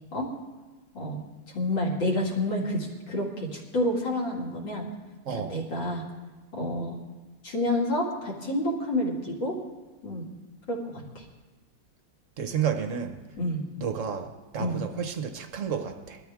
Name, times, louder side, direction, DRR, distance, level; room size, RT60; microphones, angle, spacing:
voice 1, 1.5-4.9 5.3-6.0 6.5-7.0 7.4-9.6 10.0-10.3 10.7-11.2 13.4-13.6 14.6-14.8, left 1 dB, 60° left, -2 dB, 3.1 m, -29 dB
voice 2, 12.4-13.2 13.8-14.3 14.5-16.2, right 7 dB, 55° right, 6 dB, 0.9 m, -30 dB
20.0 x 13.0 x 3.6 m, 1.2 s
omnidirectional pair, 2.3 m